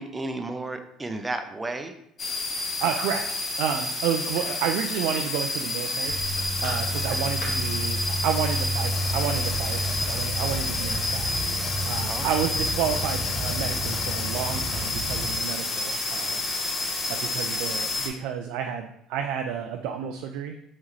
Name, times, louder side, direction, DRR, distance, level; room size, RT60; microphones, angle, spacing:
voice 1, 0.0-1.9 4.4-4.5 7.1-7.3 12.0-12.5, right 2 dB, 20° right, 7 dB, 0.6 m, -33 dB
sound 1, 2.2-18.1, left 2 dB, 35° left, 0.9 m, -29 dB
voice 2, 2.8-11.3 11.6-16.4 17.1-20.5, right 8 dB, 75° right, 5 dB, 0.3 m, -31 dB
sound 2, 6.1-15.2, right 1 dB, 70° left, 1.5 m, -31 dB
4.1 x 3.7 x 3.1 m, 0.74 s
supercardioid pair, 80°, 0 cm